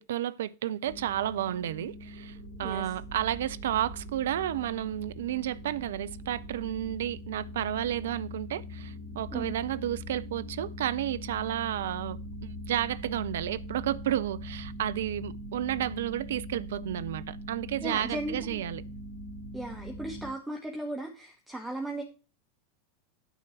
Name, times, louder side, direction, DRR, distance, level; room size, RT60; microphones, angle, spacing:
voice 1, 0.0-18.8, right 11 dB, 65° right, 0.5 m, -32 dB
sound 1, 0.8-20.3, equal, 80° left, 2.7 m, -42 dB
voice 2, 17.8-18.6 19.5-22.0, right 1 dB, 5° right, 1.6 m, -36 dB
9.1 x 4.4 x 7.3 m
figure-of-eight pair, 85°, 0 cm